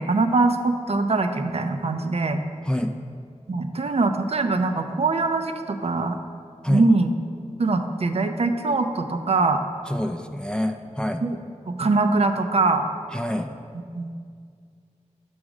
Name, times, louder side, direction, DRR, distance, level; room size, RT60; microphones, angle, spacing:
voice 1, 0.0-2.4 3.5-6.2 6.7-7.1 7.6-9.6 11.2-11.4 11.7-12.8 14.0-14.1, right 3 dB, 55° right, 7 dB, 0.5 m, -22 dB
voice 2, 2.6-3.0 6.6-6.9 9.9-11.2 13.1-13.5, left 1 dB, 5° left, 5 dB, 0.4 m, -26 dB
6.3 x 6.2 x 4.9 m, 2.2 s
wide cardioid pair, 75°, 12 cm